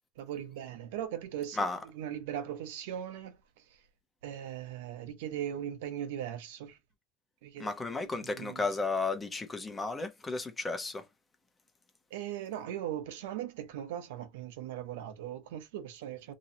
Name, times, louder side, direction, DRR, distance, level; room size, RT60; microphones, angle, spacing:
voice 1, 0.2-1.7 1.9-3.8 4.2-6.8 7.4-7.7 8.0-8.6 12.1-16.3, right 10 dB, 85° right, 0.9 m, -39 dB
voice 2, 7.6-11.0, left 3 dB, 15° left, 1.0 m, -33 dB
3.1 x 2.7 x 3.9 m
supercardioid pair, 140°, 0 cm